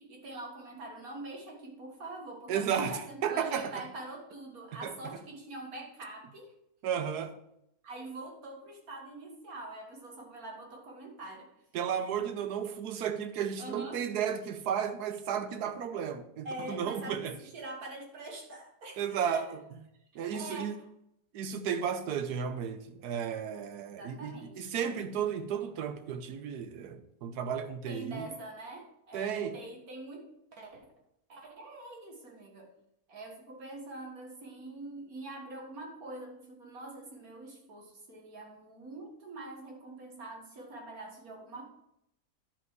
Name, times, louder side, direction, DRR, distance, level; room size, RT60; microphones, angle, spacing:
voice 1, 0.0-6.5 7.8-11.5 13.6-14.0 16.4-19.5 20.3-20.8 24.0-24.9 27.9-30.8 31.3-32.7 33.1-41.6, right 2 dB, 70° right, 2.1 m, -44 dB
voice 2, 2.5-3.8 4.8-4.9 6.8-7.3 11.7-17.3 19.0-19.4 20.1-20.7 21.3-28.3 29.1-29.6, right 8 dB, 85° right, 1.4 m, -33 dB
10.5 x 5.3 x 4.6 m
omnidirectional pair, 1.6 m